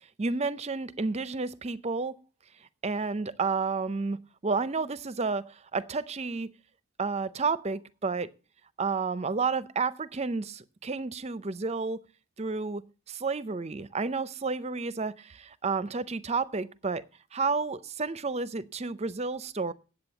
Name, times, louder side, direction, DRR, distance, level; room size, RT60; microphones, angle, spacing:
voice 1, 0.2-2.2 2.8-6.5 7.0-8.3 8.8-12.0 12.4-12.8 13.1-17.0 17.3-19.7, right 4 dB, 30° right, 0.6 m, -31 dB
8.9 x 8.2 x 8.0 m
head